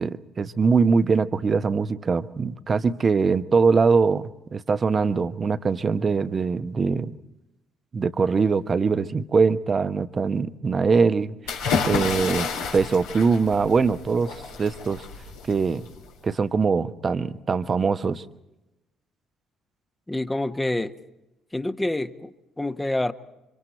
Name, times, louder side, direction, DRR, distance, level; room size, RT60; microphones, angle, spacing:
voice 1, 0.0-7.2 7.9-11.3 11.8-15.0 15.5-15.8 16.2-18.2, right 5 dB, 40° right, 11 dB, 1.1 m, -22 dB
sound 1, 11.5-16.3, left 5 dB, 75° left, 3.5 m, -30 dB
voice 2, 20.1-20.9 21.5-23.1, left 1 dB, 15° left, 8 dB, 1.4 m, -27 dB
30.0 x 25.5 x 4.4 m, 0.94 s
figure-of-eight pair, 45°, 0 cm